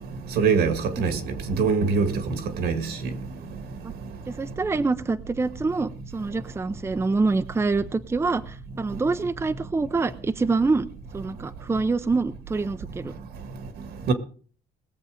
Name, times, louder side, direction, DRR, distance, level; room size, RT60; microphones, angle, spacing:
voice 1, 0.4-1.2 1.5-2.1 2.6-2.9 14.1-14.2, right 5 dB, 70° right, 2.0 m, -22 dB
voice 2, 4.3-10.9 11.1-13.1, right 3 dB, 15° right, 0.6 m, -26 dB
20.5 x 7.3 x 5.0 m
cardioid pair, 110°, 17 cm